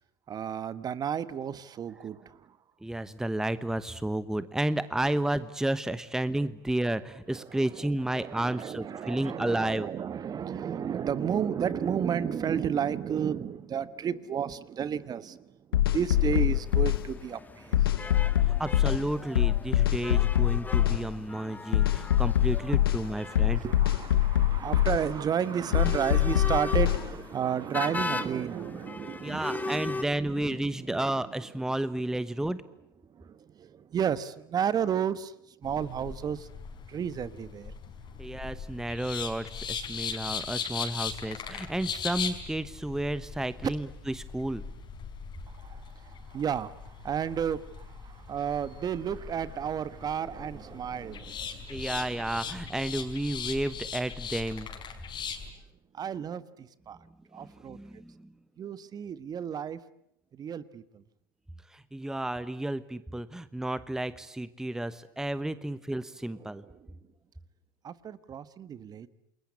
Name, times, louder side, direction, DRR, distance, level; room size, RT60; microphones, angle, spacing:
voice 1, 0.3-2.6 7.3-18.0 18.3-18.4 20.9-21.0 21.9-31.3 32.3-32.4 33.1-36.5 36.9-37.7 45.5-52.6 55.9-57.0 57.3-57.8 58.6-59.8 60.3-61.0 66.3-66.9 67.8-69.1, right 8 dB, 35° right, 16 dB, 1.3 m, -33 dB
voice 2, 2.8-9.9 18.4-23.6 29.2-32.6 38.2-44.6 51.7-54.7 57.7-58.3 61.7-66.6, right 1 dB, 5° right, 14 dB, 1.1 m, -32 dB
sound 1, 15.7-17.0 17.7-19.0 19.4-21.0 21.7-23.0 23.4-25.0 25.7-27.0, left 13 dB, 80° left, 1.2 m, -23 dB
sound 2, 16.1-30.0, left 3 dB, 15° left, 1.8 m, -39 dB
sound 3, 35.6-55.5, left 6 dB, 40° left, 5.1 m, -39 dB
28.5 x 21.5 x 9.7 m, 0.78 s
hypercardioid pair, 85°, 12 cm